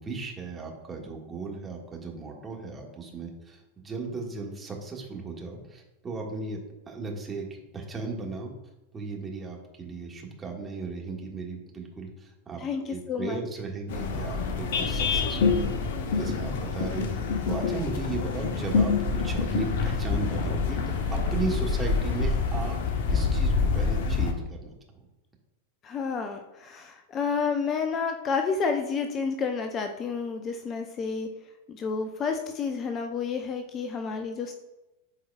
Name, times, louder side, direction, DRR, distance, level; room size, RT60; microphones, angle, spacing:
voice 1, 0.0-8.5 8.9-15.7 16.1-22.8 23.1-24.7, right 3 dB, 15° right, 0 dB, 1.7 m, -36 dB
voice 2, 12.6-13.4 25.8-31.3 31.7-34.5, left 5 dB, 30° left, 6 dB, 0.6 m, -30 dB
sound 1, 13.9-24.3, left 5 dB, 55° left, 0.9 m, -26 dB
12.5 x 4.6 x 2.3 m, 1.0 s
figure-of-eight pair, 90°, 0 cm